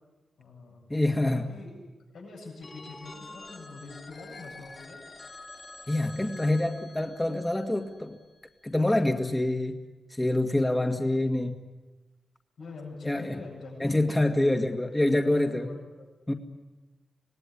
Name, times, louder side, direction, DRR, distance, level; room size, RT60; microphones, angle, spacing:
voice 1, 0.4-0.8 1.3-1.7 2.1-5.0 12.6-14.0 14.4-14.9 15.5-16.1, left 3 dB, 80° left, -2 dB, 7.9 m, -45 dB
voice 2, 0.9-1.5 5.9-8.2 8.6-9.8 10.1-11.5 13.0-13.4 13.8-15.7 16.3-16.4, left 1 dB, 15° left, 4 dB, 1.8 m, -26 dB
Telephone, 2.6-8.4, left 2 dB, 40° left, 3.0 m, -47 dB
26.0 x 18.5 x 9.9 m, 1.2 s
cardioid pair, 85°, 0 cm